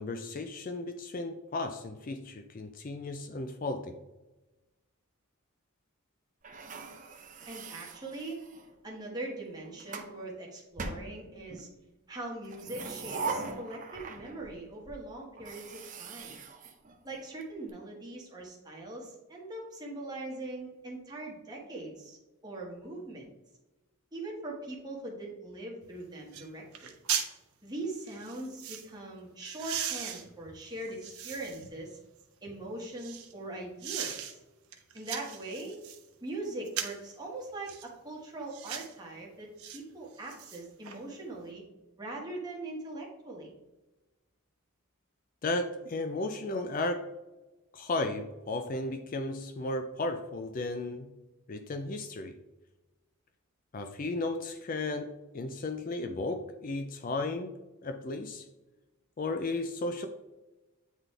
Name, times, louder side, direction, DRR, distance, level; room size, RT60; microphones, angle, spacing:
voice 1, 0.0-4.0 45.4-47.1 47.7-51.1 51.5-52.4 53.7-57.5 57.8-58.5 59.2-60.1, left 2 dB, 40° left, 7 dB, 0.4 m, -34 dB
sound 1, 6.4-8.7 9.5-10.1 10.8-11.7 12.4-14.6 14.9-15.0 15.4-17.4, right 4 dB, 35° right, 0.6 m, -41 dB
voice 2, 7.5-8.4 8.8-11.7 12.1-16.4 17.0-22.2 22.4-23.3 24.1-26.9 27.6-32.0 32.4-34.4 34.9-35.8 36.2-41.6 42.0-43.5, right 2 dB, 20° right, -3 dB, 1.5 m, -41 dB
sound 2, 25.8-25.9 26.3-26.5 26.7-27.3 28.1-28.9 29.4-31.7 32.2-33.3 33.8-34.3 34.7-36.0 36.7-37.1 37.7-37.9 38.5-38.9 39.6-39.8 40.1-41.0 41.3-41.4, right 9 dB, 85° right, 0.9 m, -38 dB
9.0 x 4.0 x 3.3 m, 1.1 s
head